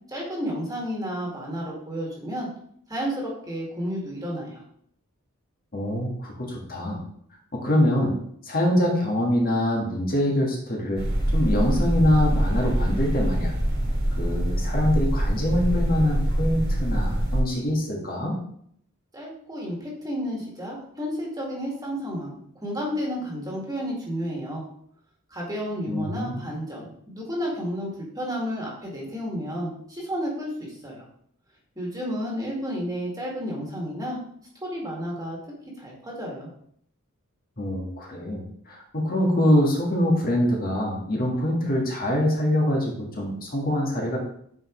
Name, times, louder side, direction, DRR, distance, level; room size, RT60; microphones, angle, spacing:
voice 1, 0.1-2.5 2.9-4.6 19.1-22.3 22.6-24.6 25.3-31.0 31.8-34.2 34.6-35.4 35.8-36.5, equal, 15° right, -3 dB, 2.0 m, -31 dB
voice 2, 5.7-7.0 7.5-8.2 8.4-11.0 11.3-13.5 14.2-18.4 25.9-26.4 37.6-44.2, left 1 dB, 40° left, -2 dB, 1.6 m, -24 dB
sound 1, 11.0-17.4, right 1 dB, 50° right, 2.1 m, -24 dB
9.0 x 4.9 x 3.1 m, 0.66 s
head